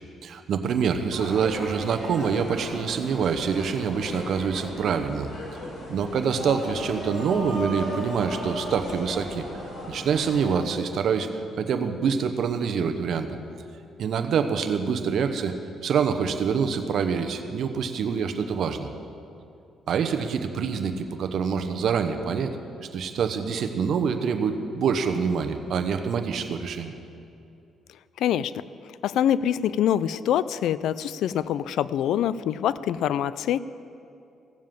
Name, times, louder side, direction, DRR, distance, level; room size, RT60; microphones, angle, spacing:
voice 1, 0.2-5.3 5.9-9.4 9.9-13.3 14.0-15.5 15.8-18.9 19.9-22.6 22.9-26.9, right 6 dB, 65° right, 7 dB, 1.0 m, -26 dB
sound 1, 1.1-10.6, left 1 dB, 50° left, 4.2 m, -36 dB
voice 2, 28.2-28.5 29.0-33.6, left 10 dB, 80° left, 17 dB, 0.4 m, -25 dB
16.0 x 7.5 x 7.5 m, 2.6 s
cardioid pair, 90°, 0 cm